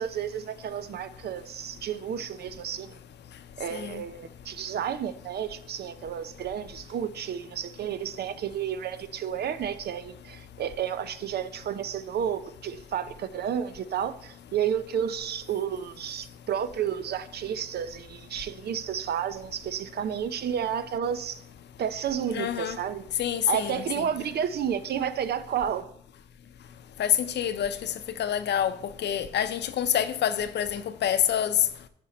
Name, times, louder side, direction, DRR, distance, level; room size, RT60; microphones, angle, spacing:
voice 1, 0.0-3.0 3.6-21.4 21.8-23.0 23.5-25.9, right 8 dB, 65° right, 0.6 m, -31 dB
voice 2, 3.7-4.0 22.3-22.8 23.2-24.1 27.0-27.9 28.2-28.7 29.0-31.6, left 10 dB, 75° left, 0.7 m, -27 dB
10.5 x 5.2 x 4.2 m
cardioid pair, 120°, 18 cm